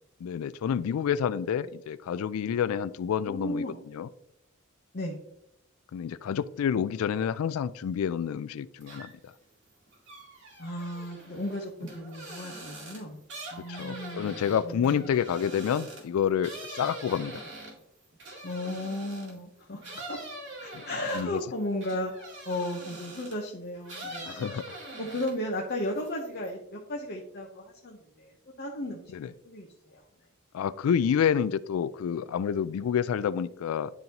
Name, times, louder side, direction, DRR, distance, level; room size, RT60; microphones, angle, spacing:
voice 1, 0.2-3.6 3.9-4.1 5.9-9.3 13.7-17.4 20.7-20.8 21.1-21.4 24.2-24.8 29.1-29.3 30.5-33.9, left 8 dB, 90° left, 15 dB, 0.3 m, -28 dB
voice 2, 3.2-3.8 4.9-5.2 10.6-13.2 13.5-15.1 18.4-20.2 20.6-22.1 22.5-24.5 25.0-28.3 28.6-29.0 29.4-30.0, left 1 dB, 50° left, 0 dB, 0.8 m, -35 dB
sound 1, 8.8-9.3 9.7-19.4 19.8-23.5 23.8-25.5 25.9-26.5, right 2 dB, 60° right, 2.2 m, -44 dB
10.5 x 3.9 x 2.9 m, 0.79 s
head